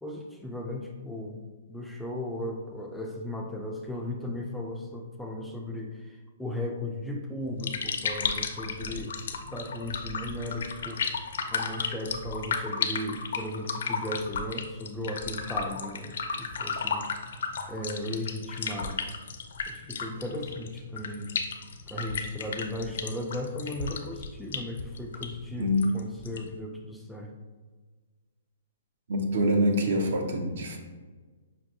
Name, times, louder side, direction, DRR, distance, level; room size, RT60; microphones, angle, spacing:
voice 1, 0.0-1.4 1.7-9.2 9.5-11.0 11.5-17.0 17.7-19.0 19.7-21.3 21.9-27.3, left 1 dB, ahead, 0 dB, 0.3 m, -36 dB
sound 1, 7.4-26.6, left 5 dB, 70° left, 0.4 m, -34 dB
voice 2, 29.1-30.8, equal, 70° right, 3 dB, 0.7 m, -25 dB
5.7 x 2.2 x 2.7 m, 1.3 s
hypercardioid pair, 150°, 0 cm